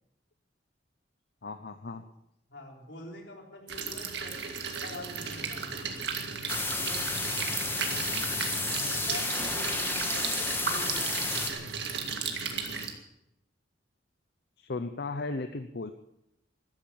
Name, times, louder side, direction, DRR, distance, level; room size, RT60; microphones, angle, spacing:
voice 1, 1.4-2.0 14.6-15.9, left 3 dB, 60° left, 9 dB, 0.8 m, -36 dB
voice 2, 2.5-5.8 6.8-7.1 8.8-11.6, left 1 dB, 80° left, 1 dB, 3.9 m, -45 dB
sound 1, 3.7-12.9, right 5 dB, 65° right, 2.0 m, -35 dB
sound 2, 6.5-11.5, left 3 dB, 15° left, 1.8 m, -32 dB
14.5 x 12.5 x 7.0 m, 0.81 s
head